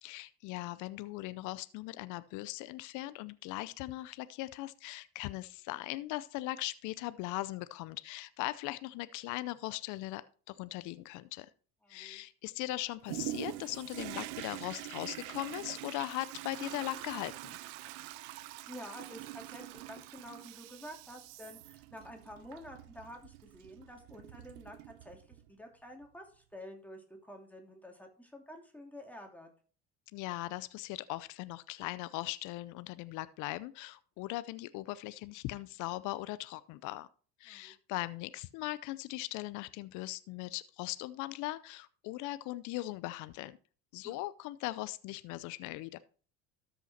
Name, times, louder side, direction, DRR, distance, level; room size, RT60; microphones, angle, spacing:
voice 1, 0.0-11.5 11.9-17.6 30.1-37.1 37.4-43.6 43.9-46.0, left 18 dB, 65° left, 16 dB, 0.6 m, -39 dB
voice 2, 11.8-12.2 18.7-29.5 37.5-37.7 44.0-44.2, equal, 5° left, 2 dB, 2.7 m, -50 dB
Toilet flush, 13.1-25.5 26.0-26.1, right 17 dB, 80° right, 0.7 m, -45 dB
13.0 x 5.7 x 4.2 m, 0.41 s
supercardioid pair, 85°, 32 cm